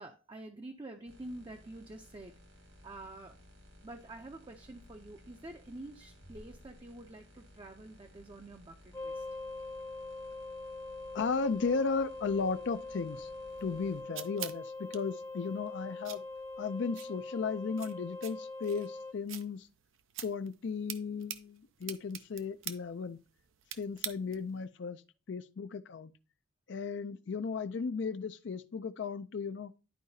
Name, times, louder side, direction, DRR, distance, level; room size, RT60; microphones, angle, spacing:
voice 1, 0.0-2.4 2.8-3.4 3.8-9.3, right 2 dB, 25° right, 0.5 m, -48 dB
sound 1, 1.1-14.0, equal, 70° right, 1.8 m, -58 dB
sound 2, 8.9-19.1, left 2 dB, 15° left, 0.7 m, -43 dB
voice 2, 11.1-13.3 13.6-16.2 16.6-19.7 20.2-23.2 23.7-25.0 25.3-26.1 26.7-29.7, left 5 dB, 65° left, 0.4 m, -35 dB
sound 3, 13.6-24.6, right 11 dB, 90° right, 0.6 m, -47 dB
11.5 x 4.7 x 2.7 m
head